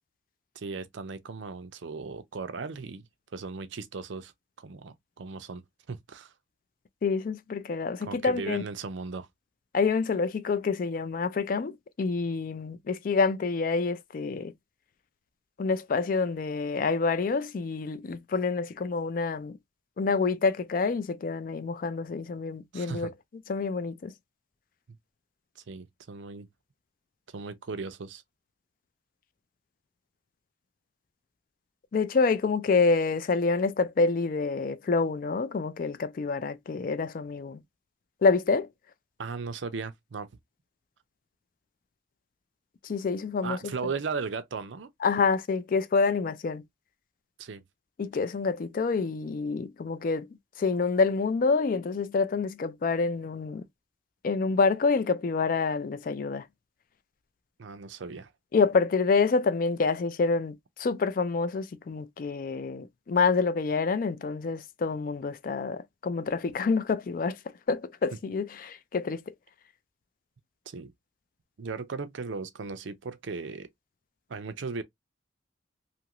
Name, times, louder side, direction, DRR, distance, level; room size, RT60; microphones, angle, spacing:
voice 1, 0.5-4.3 4.6-6.3 8.0-9.3 22.7-23.1 24.9-25.0 25.6-26.5 27.3-28.2 39.2-40.3 43.4-44.9 47.4-47.6 57.6-58.3 70.7-70.9 71.6-73.7 74.3-74.8, right 4 dB, 80° right, 0.5 m, -37 dB
voice 2, 7.0-8.6 9.7-14.5 15.6-19.6 20.0-23.1 23.5-24.1 31.9-37.6 38.2-38.7 42.8-43.6 45.0-46.6 48.0-50.3 50.6-53.6 54.2-56.5 58.5-67.4 67.7-69.2, left 4 dB, 45° left, 0.3 m, -27 dB
2.8 x 2.5 x 2.9 m
head